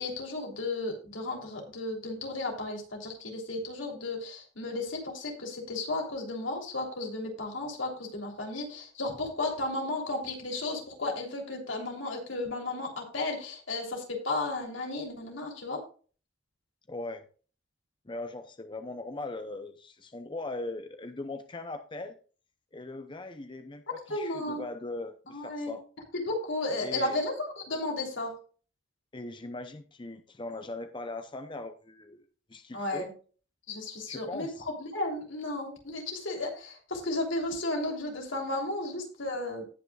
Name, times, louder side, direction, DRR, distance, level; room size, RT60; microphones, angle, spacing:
voice 1, 0.0-15.8 24.1-24.6 25.3-25.7 26.1-28.3 32.7-33.1 33.7-39.6, left 2 dB, 85° left, 1 dB, 3.3 m, -34 dB
voice 2, 16.9-17.2 18.0-22.2 22.7-25.8 26.8-27.2 29.1-33.1 34.1-34.6, left 2 dB, 25° left, 8 dB, 0.6 m, -40 dB
18.0 x 6.0 x 2.4 m, 0.39 s
head